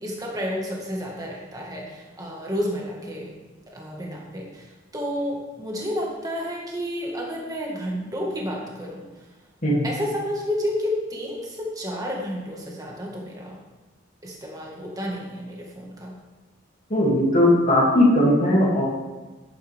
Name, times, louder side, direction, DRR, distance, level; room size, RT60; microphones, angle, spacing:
voice 1, 0.0-3.3 3.7-9.1 9.8-13.6 14.2-16.2, equal, 20° right, -2 dB, 1.8 m, -31 dB
voice 2, 16.9-18.9, left 1 dB, 40° left, -5 dB, 2.8 m, -18 dB
10.5 x 9.6 x 3.6 m, 1.2 s
head